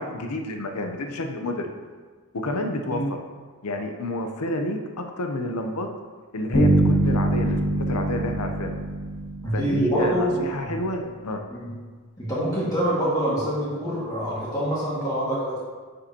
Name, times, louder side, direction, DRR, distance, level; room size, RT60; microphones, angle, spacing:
voice 1, 0.0-1.7 2.3-3.2 3.6-5.9 6.3-8.7 9.5-11.4, left 1 dB, 90° left, 4 dB, 0.7 m, -29 dB
sound 1, 6.5-10.3, right 1 dB, 55° left, 1.7 m, -23 dB
voice 2, 9.4-10.5 11.5-11.7 12.2-15.6, equal, 15° left, -9 dB, 1.8 m, -25 dB
9.7 x 5.4 x 2.9 m, 1.5 s
head